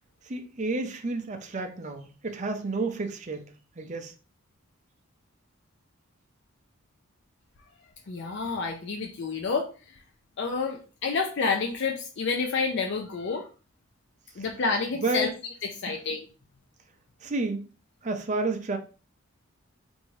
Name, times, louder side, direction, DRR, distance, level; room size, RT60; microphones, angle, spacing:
voice 1, 0.3-3.4 3.8-4.1 15.0-15.3 17.2-17.6 18.0-18.8, right 2 dB, 35° right, 0.5 m, -30 dB
voice 2, 8.1-10.0 10.4-13.5 14.4-15.3 15.6-16.3, left 4 dB, 55° left, 0.5 m, -29 dB
4.6 x 2.6 x 3.1 m
head